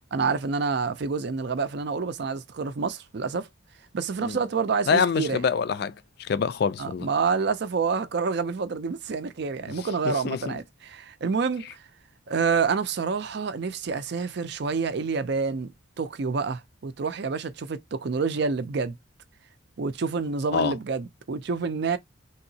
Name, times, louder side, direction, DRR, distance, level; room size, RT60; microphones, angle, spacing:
voice 1, 0.1-3.5 3.9-5.4 6.8-11.8 12.3-19.0 19.8-22.0, right 5 dB, 55° right, 0.4 m, -28 dB
voice 2, 4.9-5.9 6.2-7.1 10.0-10.5 20.5-20.7, left 6 dB, 50° left, 0.3 m, -25 dB
3.5 x 2.9 x 2.7 m
head